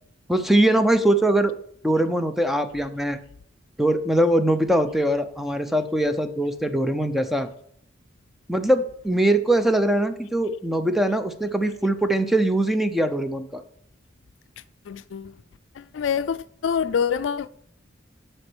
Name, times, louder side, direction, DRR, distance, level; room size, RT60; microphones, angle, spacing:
voice 1, 0.3-1.5 1.8-3.2 3.8-7.5 8.5-13.6, right 1 dB, ahead, 0.5 m, -22 dB
voice 2, 14.9-15.3 15.8-17.5, left 7 dB, 70° left, 0.4 m, -26 dB
9.6 x 4.5 x 6.1 m
head